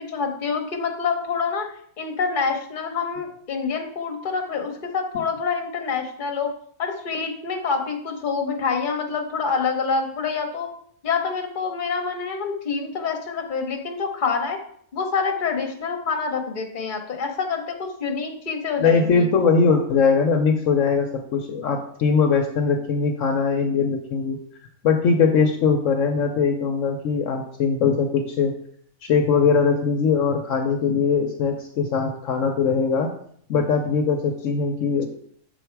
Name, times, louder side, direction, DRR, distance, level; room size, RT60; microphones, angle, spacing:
voice 1, 0.0-1.7 2.0-6.5 6.8-10.7 11.0-14.6 14.9-19.3, left 5 dB, 40° left, 3 dB, 1.1 m, -26 dB
voice 2, 18.8-24.4 24.8-28.5 29.0-33.1 33.5-35.1, left 5 dB, 65° left, 4 dB, 1.0 m, -21 dB
6.9 x 4.4 x 4.6 m, 0.64 s
omnidirectional pair, 1.5 m